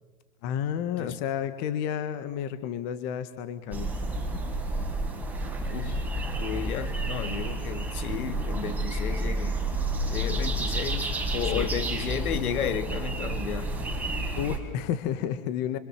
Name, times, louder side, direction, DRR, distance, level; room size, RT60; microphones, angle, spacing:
voice 1, 0.4-3.9 11.4-11.7 14.4-15.8, left 9 dB, 40° left, 1.9 m, -31 dB
sound 1, 3.7-14.6, right 1 dB, 5° right, 4.7 m, -30 dB
voice 2, 5.7-6.0 6.3-9.6 10.1-13.7, left 8 dB, 85° left, 2.4 m, -33 dB
27.5 x 26.0 x 7.7 m
hypercardioid pair, 145°, 42 cm